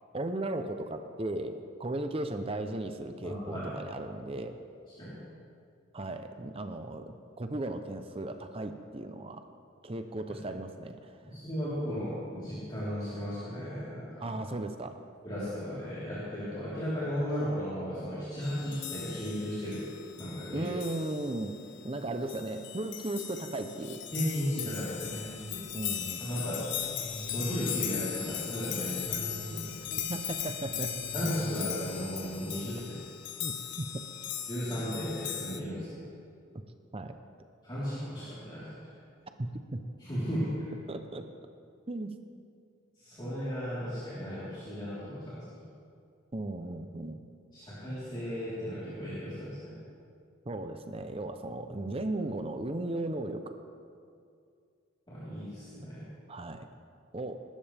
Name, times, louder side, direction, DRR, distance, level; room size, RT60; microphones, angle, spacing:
voice 1, 0.1-4.6 5.9-9.4 9.8-11.0 14.2-15.0 20.5-21.6 21.8-24.0 25.7-26.5 30.1-31.0 33.4-33.9 36.9-37.1 39.4-39.8 40.9-41.3 41.9-42.1 46.3-47.2 50.5-53.6 56.3-56.7 57.1-57.4, right 2 dB, 30° right, 7 dB, 0.6 m, -36 dB
voice 2, 3.2-3.7 5.0-5.2 10.3-10.4 11.2-14.3 15.2-19.8 20.2-20.7 24.1-25.2 26.2-26.7 27.3-29.7 31.1-32.8 34.5-36.0 37.6-38.8 40.0-40.5 43.0-45.4 47.5-49.8 55.1-56.0, equal, 25° left, -12 dB, 3.9 m, -35 dB
sound 1, 18.4-35.6, left 10 dB, 60° left, 0.8 m, -38 dB
sound 2, 25.0-25.6 25.9-26.0 26.3-26.4 26.8-28.4 28.7-29.6 29.9-31.6 31.9-32.4 32.7-32.8, left 1 dB, 75° right, 3.3 m, -43 dB
20.5 x 13.0 x 3.5 m, 2.3 s
head